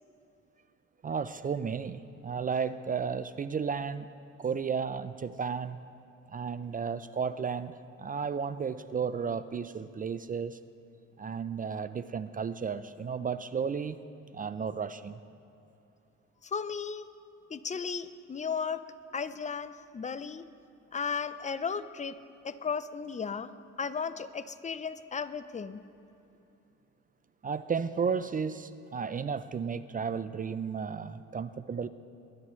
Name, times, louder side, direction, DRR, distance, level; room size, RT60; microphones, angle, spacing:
voice 1, 1.0-4.1 4.4-5.8 6.3-10.6 11.2-14.0 14.3-15.2 27.4-31.9, right 6 dB, 30° right, 13 dB, 0.4 m, -33 dB
voice 2, 16.4-17.1 17.5-18.8 19.1-20.5 20.9-22.2 22.4-23.5 23.8-25.8, left 6 dB, 25° left, 14 dB, 0.5 m, -35 dB
21.0 x 11.0 x 3.1 m, 2.9 s
cardioid pair, 90°, 30 cm